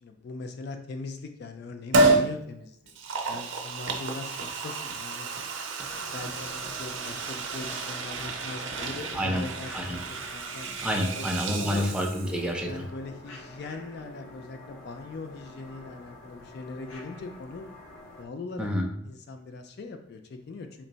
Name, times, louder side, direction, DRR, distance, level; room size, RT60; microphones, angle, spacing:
voice 1, 0.0-3.0 3.3-5.3 5.8-10.7 11.1-11.2 11.6-11.9 12.6-17.7 18.2-18.7 19.0-20.9, left 3 dB, 55° left, 6 dB, 0.4 m, -40 dB
Liquid, 1.9-2.3 2.9-12.5 12.8-12.9, right 2 dB, 70° right, 0.6 m, -30 dB
sound 1, 5.9-18.2, left 2 dB, 85° left, 0.7 m, -48 dB
voice 2, 9.1-9.5 9.7-9.9 10.8-12.7 18.6-18.9, equal, 5° right, 0 dB, 0.5 m, -28 dB
4.4 x 2.1 x 3.8 m, 0.70 s
head